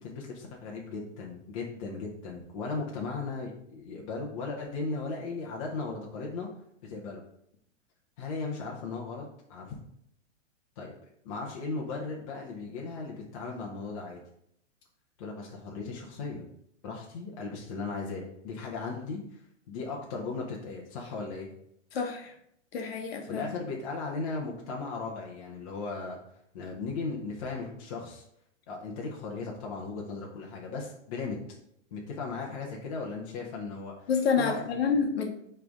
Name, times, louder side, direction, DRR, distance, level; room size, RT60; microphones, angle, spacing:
voice 1, 0.0-6.5 6.9-7.2 8.2-9.7 10.8-10.9 11.2-14.2 15.2-16.4 16.8-19.4 19.7-21.5 23.3-26.2 26.5-28.2 28.7-31.4 31.9-34.1 34.4-35.0, left 4 dB, 30° left, -2 dB, 0.8 m, -37 dB
voice 2, 21.9-22.3 22.7-23.4 34.1-35.3, left 5 dB, 50° left, 3 dB, 1.1 m, -28 dB
9.1 x 3.3 x 3.6 m, 0.73 s
hypercardioid pair, 170°, 37 cm